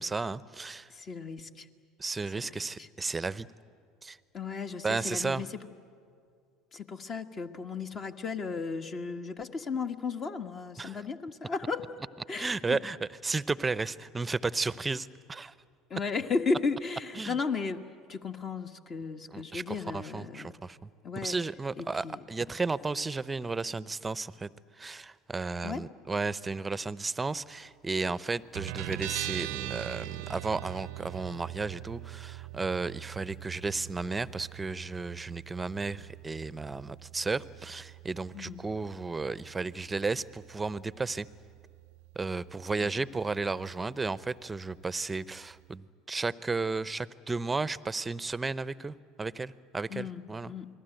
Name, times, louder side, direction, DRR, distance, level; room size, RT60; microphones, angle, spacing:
voice 1, 0.0-0.9 2.0-3.5 4.0-4.2 4.8-5.4 10.8-11.0 12.4-15.5 17.2-17.4 19.3-20.9 21.2-24.5 24.8-41.3 42.2-50.5, right 3 dB, 20° right, 18 dB, 0.7 m, -33 dB
voice 2, 0.9-1.7 2.4-2.9 4.3-5.6 6.7-11.8 12.3-12.8 15.9-17.8 18.1-20.5 21.0-21.4 21.8-22.2 25.6-25.8 38.3-38.6 42.8-42.9 49.9-50.7, left 4 dB, 40° left, 7 dB, 1.5 m, -35 dB
Guitar, 28.5-45.7, right 21 dB, 70° right, 0.6 m, -43 dB
28.5 x 20.5 x 9.1 m, 2.3 s
hypercardioid pair, 75°, 0 cm